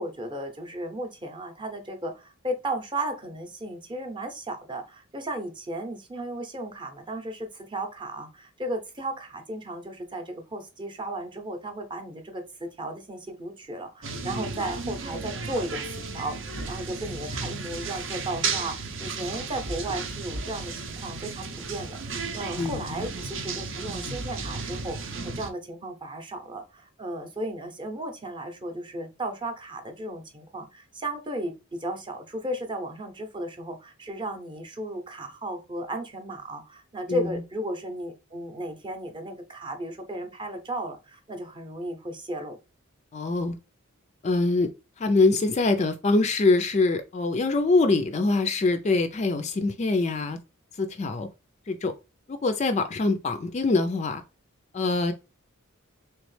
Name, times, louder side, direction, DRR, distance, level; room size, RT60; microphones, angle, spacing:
voice 1, 0.0-15.8 16.1-42.6, right 1 dB, 20° right, 0.7 m, -35 dB
sound 1, 14.0-25.5, right 4 dB, 60° right, 0.7 m, -34 dB
voice 2, 22.6-23.0 37.1-37.3 43.1-43.6 44.2-44.7 45.0-50.4 50.8-51.3 51.7-51.9 52.3-54.2 54.7-55.1, left 3 dB, 30° left, 0.3 m, -24 dB
3.4 x 3.0 x 3.1 m
head